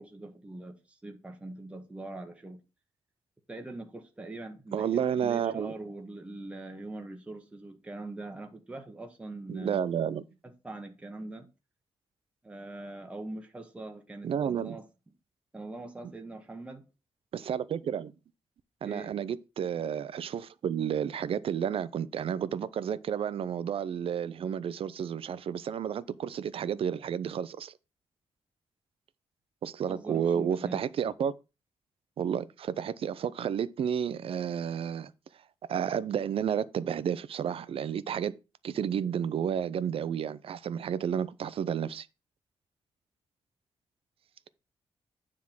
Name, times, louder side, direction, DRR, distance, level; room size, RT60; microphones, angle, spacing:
voice 1, 0.0-2.6 3.5-9.9 10.4-11.5 12.4-14.8 15.5-16.8 18.8-19.1 29.9-30.8, right 2 dB, 10° right, 1.1 m, -42 dB
voice 2, 4.7-5.7 9.5-10.2 14.2-14.8 17.3-18.1 18.8-27.7 29.6-31.3 32.2-35.1 35.7-38.3 38.6-42.1, right 8 dB, 60° right, 0.5 m, -31 dB
9.6 x 3.7 x 5.9 m
wide cardioid pair, 150°, 11 cm